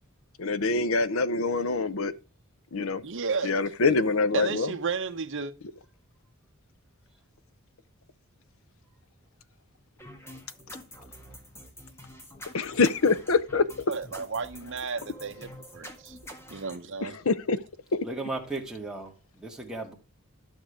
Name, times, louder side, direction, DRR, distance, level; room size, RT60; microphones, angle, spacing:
voice 1, 0.4-2.1 2.7-3.0 3.4-4.7 12.5-13.7 17.0-17.6 17.9-18.1, left 3 dB, 65° left, 0.7 m, -25 dB
voice 2, 3.0-3.5 4.3-5.5 13.9-16.2 16.5-17.2, right 4 dB, 60° right, 0.9 m, -33 dB
sound 1, 10.0-16.8, equal, 10° left, 1.6 m, -46 dB
voice 3, 18.0-19.9, right 2 dB, 5° right, 2.0 m, -36 dB
12.0 x 6.4 x 5.0 m
head